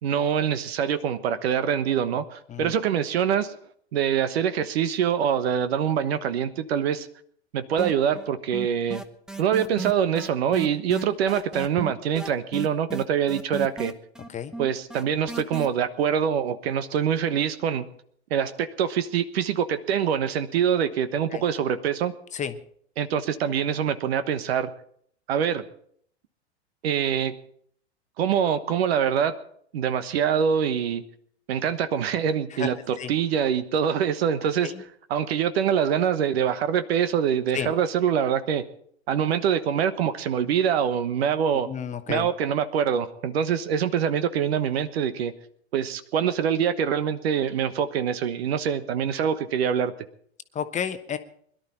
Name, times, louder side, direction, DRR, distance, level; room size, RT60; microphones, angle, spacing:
voice 1, 0.0-3.6 3.9-7.1 7.5-9.0 9.4-13.9 14.6-17.9 18.3-22.1 23.0-24.7 25.3-25.6 26.8-27.3 28.2-29.3 29.7-31.0 31.5-34.7 35.1-38.6 39.1-41.7 42.1-45.3 45.7-49.9, right 8 dB, 65° right, 13 dB, 1.2 m, -24 dB
sound 1, 7.8-8.3 8.5-15.7, right 3 dB, ahead, 0.9 m, -34 dB
voice 2, 41.6-42.3 50.5-51.2, left 8 dB, 20° left, 9 dB, 1.0 m, -31 dB
21.5 x 12.0 x 4.3 m, 0.63 s
hypercardioid pair, 100°, 34 cm